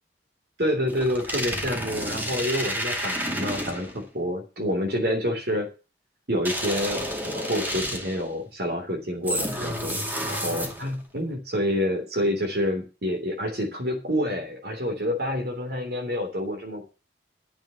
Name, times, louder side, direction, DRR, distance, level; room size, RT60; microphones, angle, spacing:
voice 1, 0.6-5.7 6.3-16.9, equal, 55° right, 2 dB, 3.4 m, -28 dB
sound 1, 0.9-4.0 6.5-8.3 9.3-11.0, equal, 10° right, 2.4 m, -30 dB
12.0 x 7.1 x 7.0 m, 0.31 s
head